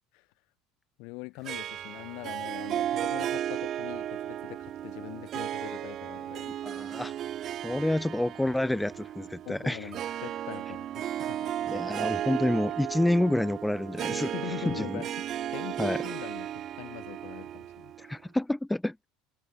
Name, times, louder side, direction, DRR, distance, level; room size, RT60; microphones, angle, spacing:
voice 1, 1.0-6.5 9.5-11.7 14.1-18.2, left 29 dB, 60° left, 5.3 m, -43 dB
Harp, 1.5-18.2, right 11 dB, 30° right, 1.8 m, -35 dB
voice 2, 6.6-7.1 7.6-9.9 11.7-14.3 14.7-15.0 15.8-16.0 18.0-19.0, left 1 dB, 5° left, 0.8 m, -28 dB
cardioid pair, 165°, 0 cm